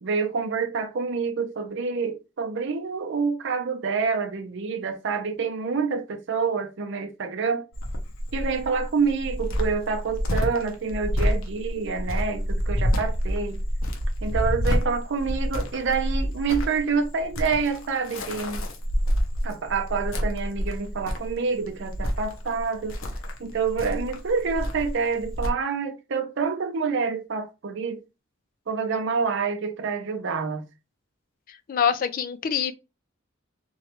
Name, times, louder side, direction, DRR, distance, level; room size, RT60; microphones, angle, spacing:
voice 1, 0.0-7.7 8.3-13.6 14.2-18.6 19.4-23.0 23.4-28.0 28.7-30.6, right 5 dB, 65° right, 0.6 m, -27 dB
Cricket, 7.7-25.5, equal, 85° left, 0.7 m, -28 dB
voice 2, 31.7-32.7, left 7 dB, 45° left, 0.3 m, -24 dB
3.1 x 2.3 x 2.8 m
head